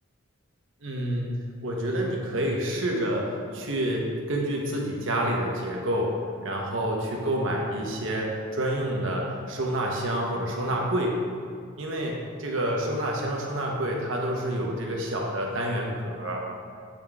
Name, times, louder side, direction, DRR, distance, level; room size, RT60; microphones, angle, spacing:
voice 1, 0.8-1.3 1.6-11.2 11.8-16.4, right 1 dB, 75° right, -1 dB, 1.0 m, -28 dB
8.5 x 3.6 x 3.5 m, 2.2 s
head